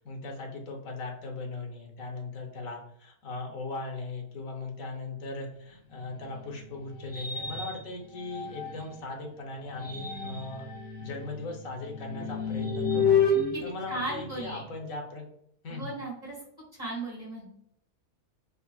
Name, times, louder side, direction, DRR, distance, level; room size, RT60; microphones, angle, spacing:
voice 1, 0.0-10.6 11.0-13.3 13.6-15.3 15.6-15.9, left 3 dB, 70° left, 1 dB, 1.0 m, -38 dB
sound 1, 5.9-9.1 9.6-14.8, left 4 dB, 50° left, 0.7 m, -31 dB
voice 2, 13.9-14.6 15.7-16.4 16.8-17.5, right 2 dB, 35° right, -5 dB, 0.9 m, -36 dB
3.9 x 2.0 x 2.3 m, 0.73 s
omnidirectional pair, 1.6 m